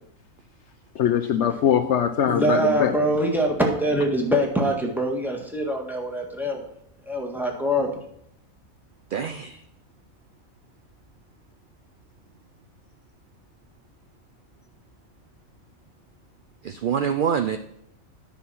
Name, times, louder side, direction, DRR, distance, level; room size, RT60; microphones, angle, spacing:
voice 1, 0.9-3.0, left 9 dB, 65° left, 8 dB, 0.8 m, -22 dB
voice 2, 2.3-6.7 7.1-7.9, equal, ahead, 0 dB, 1.5 m, -24 dB
voice 3, 9.1-9.6 16.6-17.6, right 7 dB, 75° right, 9 dB, 0.4 m, -25 dB
10.0 x 5.9 x 5.7 m, 0.74 s
omnidirectional pair, 1.4 m